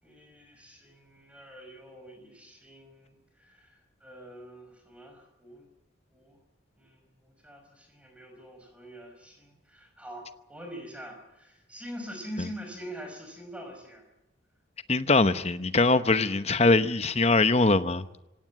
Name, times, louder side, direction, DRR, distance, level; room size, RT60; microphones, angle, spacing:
voice 1, 0.0-5.7 6.1-6.4 6.8-14.1, equal, 5° right, 4 dB, 5.5 m, -45 dB
voice 2, 14.9-18.1, left 3 dB, 35° left, 12 dB, 0.9 m, -22 dB
25.0 x 17.5 x 7.5 m, 0.90 s
head